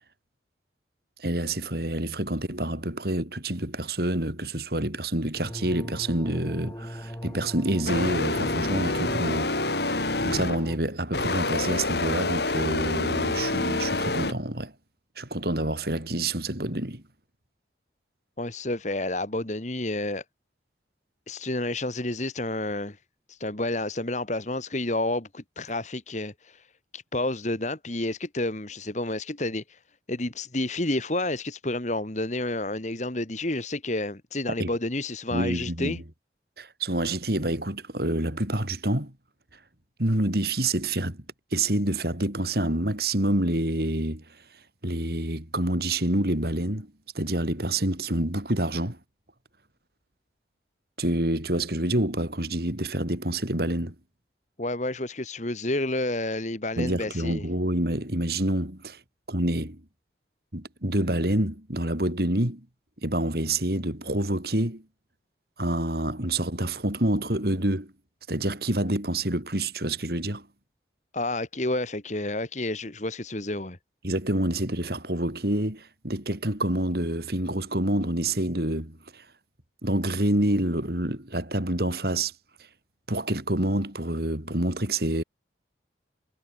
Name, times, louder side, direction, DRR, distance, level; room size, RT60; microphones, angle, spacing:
voice 1, 1.2-9.5 9.8-14.7 15.2-17.0 34.6-34.7 35.3-36.0 36.6-39.1 40.0-41.2 41.5-44.2 44.8-49.0 51.0-53.9 56.8-59.0 59.3-59.8 60.5-62.7 63.0-64.8 65.6-67.9 68.3-70.5 74.0-79.2 79.8-82.3 83.1-85.2, right 1 dB, 55° right, 3.8 m, -27 dB
sound 1, 5.3-10.8, equal, 15° left, 6.3 m, -39 dB
sound 2, 7.9-10.7 11.1-14.3, left 2 dB, 65° left, 3.8 m, -27 dB
voice 2, 18.4-20.2 21.3-23.0 23.3-26.7 26.9-29.8 30.1-36.0 54.6-57.5 71.1-73.8, left 2 dB, 40° left, 2.1 m, -30 dB
head